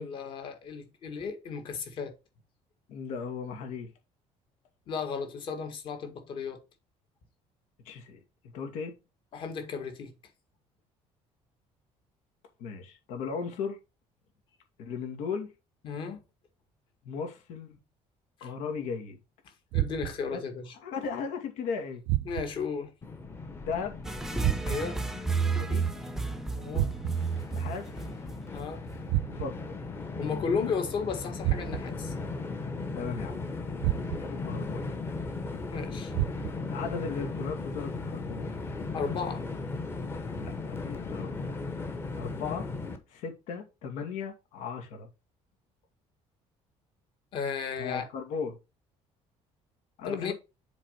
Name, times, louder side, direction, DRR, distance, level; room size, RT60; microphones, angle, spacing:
voice 1, 0.0-2.1 4.9-6.6 9.3-10.1 15.8-16.2 18.4-18.5 19.7-20.7 22.3-22.9 24.7-25.0 26.5-26.9 28.5-28.8 30.2-32.1 35.7-36.1 38.9-39.4 47.3-48.1 50.1-50.3, left 5 dB, 45° left, 1.7 m, -34 dB
voice 2, 2.9-3.9 7.9-8.2 8.5-8.9 12.6-13.8 14.8-15.5 17.0-17.8 18.4-19.2 20.3-20.4 20.8-22.0 23.6-24.0 25.5-25.9 27.5-27.9 29.3-29.8 32.9-33.4 34.1-35.0 36.7-38.5 40.3-41.3 42.2-42.7 43.1-45.1 47.8-48.6 50.0-50.3, left 5 dB, 85° left, 2.3 m, -36 dB
sound 1, 19.7-20.3 22.1-22.7 24.4-25.0 26.7-27.4 29.1-29.7 31.4-32.1 33.8-34.4 36.1-36.7, right 17 dB, 90° right, 0.5 m, -31 dB
Train, 23.0-43.0, left 3 dB, 20° left, 1.0 m, -37 dB
sound 2, 24.0-29.1, right 4 dB, 5° right, 0.6 m, -32 dB
7.4 x 4.1 x 5.0 m
cardioid pair, 180°, 12 cm